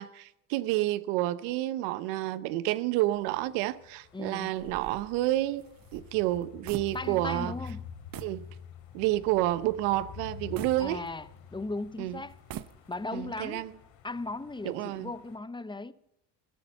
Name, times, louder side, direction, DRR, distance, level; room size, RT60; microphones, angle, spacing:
voice 1, 0.0-5.7 5.9-7.5 8.2-8.4 8.9-11.0 12.0-12.2 13.1-13.7 14.6-15.1, right 16 dB, 85° right, 1.0 m, -29 dB
sound 1, 3.2-15.4, left 7 dB, 70° left, 2.8 m, -48 dB
voice 2, 4.1-4.5 6.9-7.8 10.8-12.4 12.9-13.6 14.0-15.9, left 2 dB, 10° left, 0.7 m, -37 dB
sound 2, 4.6-7.4 7.6-7.8 8.1-8.4 8.9-9.0 10.6-11.6 12.3-13.2, right 11 dB, 45° right, 0.8 m, -44 dB
16.0 x 13.0 x 5.4 m
supercardioid pair, 95°, 47 cm